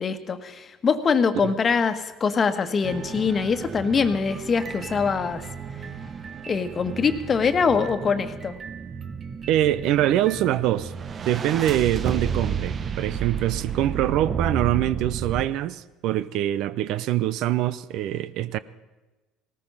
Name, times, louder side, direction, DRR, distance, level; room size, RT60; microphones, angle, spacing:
voice 1, 0.0-5.4 6.5-8.5, left 5 dB, 35° left, 1.3 m, -23 dB
sound 1, 2.8-15.5, right 6 dB, 40° right, 0.8 m, -32 dB
voice 2, 9.5-10.9 11.2-18.6, right 13 dB, 65° right, 0.5 m, -24 dB
18.0 x 14.0 x 5.6 m
supercardioid pair, 80°, 0 cm